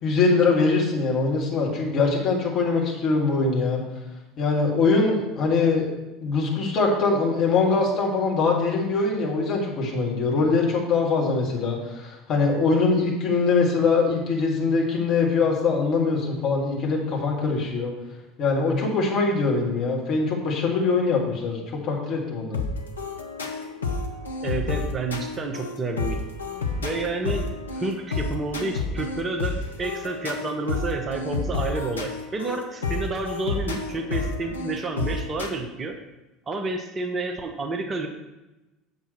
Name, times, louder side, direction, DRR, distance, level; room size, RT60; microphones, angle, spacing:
voice 1, 0.0-3.8 4.4-5.9 6.2-17.9 18.4-22.6, left 4 dB, 45° left, -2 dB, 2.2 m, -23 dB
sound 1, 22.5-35.5, left 3 dB, 80° left, 0.8 m, -30 dB
voice 2, 24.4-26.2 26.8-36.0 36.5-38.1, right 3 dB, 25° right, 4 dB, 1.0 m, -30 dB
8.2 x 7.2 x 4.4 m, 1.0 s
figure-of-eight pair, 70°, 0 cm